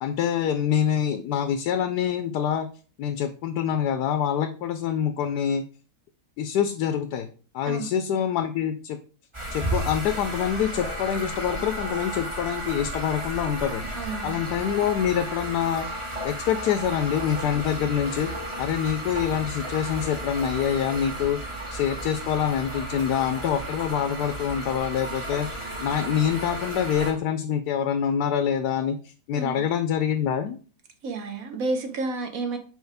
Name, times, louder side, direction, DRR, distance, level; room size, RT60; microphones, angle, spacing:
voice 1, 0.0-2.7 3.0-5.6 6.4-7.3 7.5-9.0 9.5-13.8 14.2-15.9 16.2-18.3 18.6-21.4 21.7-30.6, left 9 dB, 85° left, 1.2 m, -26 dB
sound 1, 9.3-27.1, right 1 dB, 20° right, 1.3 m, -33 dB
voice 2, 13.9-14.4 29.3-29.6 31.0-32.6, right 3 dB, 65° right, 1.3 m, -30 dB
6.3 x 4.7 x 3.4 m
omnidirectional pair, 1.7 m